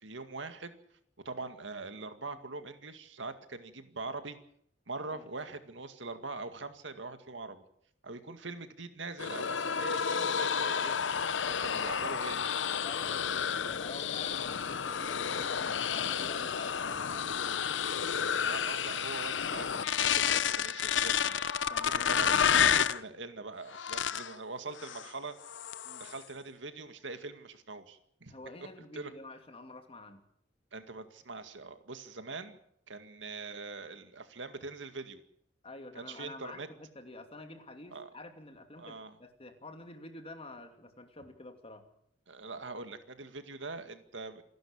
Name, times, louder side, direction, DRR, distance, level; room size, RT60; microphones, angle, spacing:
voice 1, 0.0-0.7 1.3-4.4 4.9-7.6 8.0-11.0 11.5-12.4 18.4-21.4 22.1-25.4 26.0-28.3 28.9-29.1 30.7-32.6 32.9-35.2 36.0-36.7 37.9-38.1 38.8-39.2 42.3-44.4, right 3 dB, 80° right, 8 dB, 2.1 m, -43 dB
sound 1, 9.2-23.0 23.7-24.3 24.8-25.1 25.4-26.2, left 7 dB, 80° left, 0.8 m, -30 dB
voice 2, 12.7-17.7 21.7-22.6 25.8-26.1 28.3-30.2 35.6-41.8, left 2 dB, 30° left, 6 dB, 2.7 m, -49 dB
27.5 x 11.5 x 8.8 m, 0.69 s
head